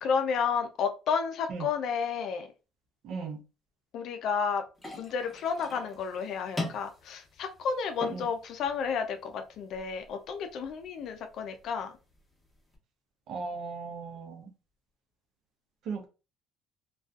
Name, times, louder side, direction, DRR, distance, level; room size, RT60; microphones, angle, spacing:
voice 1, 0.0-2.5 3.9-4.6 5.0-11.9, left 6 dB, 65° left, 6 dB, 0.4 m, -31 dB
voice 2, 3.0-3.4 8.1-8.3 13.3-14.5 15.9-16.1, right 5 dB, 65° right, 4 dB, 0.6 m, -37 dB
sound 1, 4.8-12.8, left 2 dB, 15° left, 1.0 m, -44 dB
2.4 x 2.3 x 2.3 m, 0.31 s
supercardioid pair, 85°, 0 cm